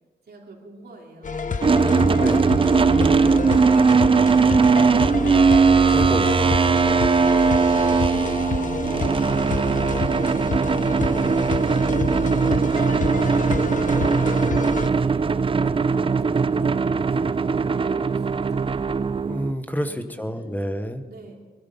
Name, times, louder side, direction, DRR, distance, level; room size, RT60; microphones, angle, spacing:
voice 1, 0.2-1.5 14.8-19.2 19.8-20.6 21.1-21.4, right 3 dB, 75° right, -1 dB, 2.9 m, -47 dB
sound 1, 1.2-14.9, left 4 dB, 50° left, 0.8 m, -29 dB
sound 2, 1.6-19.5, right 5 dB, 35° right, 0.4 m, -20 dB
voice 2, 2.2-2.5 5.9-6.3 19.3-21.0, equal, 10° left, 8 dB, 1.0 m, -28 dB
21.0 x 12.0 x 5.5 m, 1.3 s
wide cardioid pair, 160°, 17 cm